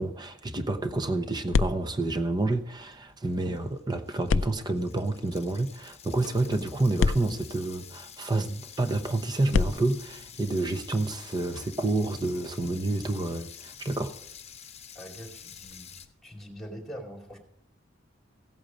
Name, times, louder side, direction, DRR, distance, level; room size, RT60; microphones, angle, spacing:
voice 1, 0.0-14.1, right 2 dB, 20° right, 0.9 m, -29 dB
sound 1, 0.9-3.2 4.3-8.2 9.4-16.1, left 5 dB, 70° left, 0.4 m, -34 dB
sound 2, 2.9-3.0 3.3-16.1, left 8 dB, 35° left, 1.0 m, -48 dB
voice 2, 14.9-15.9 16.2-17.4, equal, ahead, 2.5 m, -43 dB
16.0 x 8.5 x 5.2 m
head